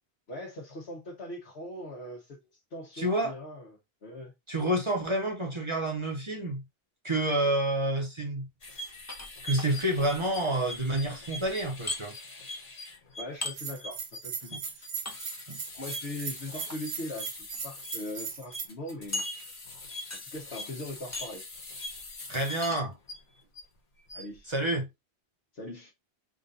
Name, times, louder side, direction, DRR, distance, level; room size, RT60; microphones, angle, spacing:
voice 1, 0.3-2.4 2.7-3.8 4.0-4.3 13.2-14.8 15.7-19.2 20.2-21.4 24.1-24.5 25.5-25.9, left 1 dB, 80° left, 1.3 m, -40 dB
voice 2, 3.0-3.3 4.5-6.6 7.0-8.5 9.4-12.1 15.5-15.6 22.3-22.9 24.5-24.9, right 1 dB, 30° right, 0.9 m, -28 dB
sound 1, 8.6-23.6 24.0-24.4, left 1 dB, 40° left, 0.9 m, -43 dB
sound 2, 9.1-9.7 11.9-12.0 13.4-13.6 15.0-15.2 16.5-16.8 17.5-17.6 18.0-18.1 19.1-19.7 20.1-20.4 21.1-21.5 22.6-22.8, left 2 dB, 20° left, 0.5 m, -36 dB
Bell, 13.4-18.7, right 6 dB, 75° right, 0.9 m, -38 dB
3.7 x 2.5 x 3.8 m
omnidirectional pair, 1.1 m